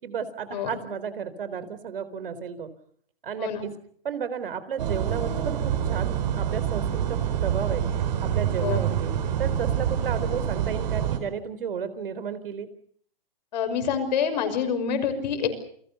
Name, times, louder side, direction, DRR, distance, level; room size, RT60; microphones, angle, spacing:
voice 1, 0.0-2.7 3.2-3.7 4.0-7.8 8.2-9.1 9.4-12.7, right 7 dB, 70° right, 13 dB, 4.0 m, -33 dB
sound 1, 4.8-11.2, right 9 dB, 50° right, 4.6 m, -26 dB
voice 2, 13.5-15.5, left 7 dB, 50° left, 8 dB, 6.1 m, -27 dB
29.5 x 20.5 x 7.1 m, 0.62 s
hypercardioid pair, 155°, 29 cm